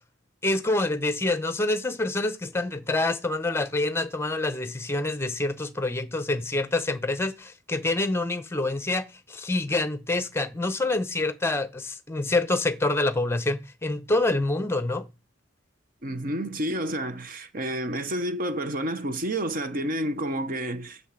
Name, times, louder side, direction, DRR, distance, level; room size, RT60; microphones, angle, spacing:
voice 1, 0.4-15.0, left 2 dB, 15° left, 0.7 m, -26 dB
voice 2, 16.0-21.0, right 1 dB, 45° right, 0.8 m, -30 dB
7.2 x 5.7 x 7.4 m
head